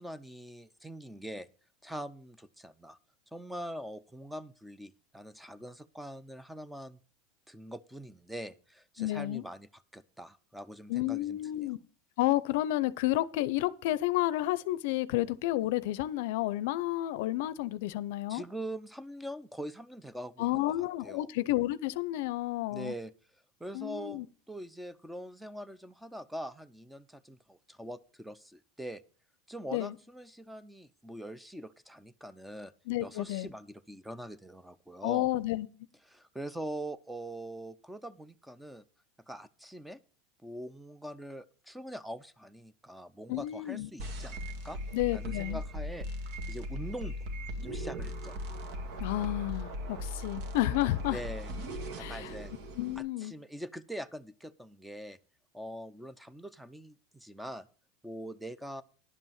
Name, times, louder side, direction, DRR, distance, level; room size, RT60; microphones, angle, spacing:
voice 1, 0.0-1.5 1.8-3.0 3.3-7.0 7.5-11.4 18.3-20.7 21.0-21.3 22.7-23.1 23.6-24.2 24.5-29.0 29.5-32.7 33.0-35.3 36.1-38.8 39.3-40.0 40.4-44.8 45.1-46.1 46.5-47.2 47.6-48.4 51.1-51.5 52.0-52.5 53.0-55.2 55.5-57.7 58.0-58.8, right 1 dB, 5° right, 0.6 m, -43 dB
voice 2, 9.0-9.4 10.9-11.8 12.2-18.4 20.4-22.9 23.7-24.3 29.7-30.0 32.9-33.5 35.0-35.7 43.3-43.9 44.9-45.6 49.0-51.2 52.0-52.3 52.8-53.3, left 16 dB, 75° left, 0.6 m, -31 dB
sound 1, 44.0-53.0, equal, 65° right, 1.8 m, -38 dB
10.5 x 5.5 x 7.3 m
supercardioid pair, 120°, 0 cm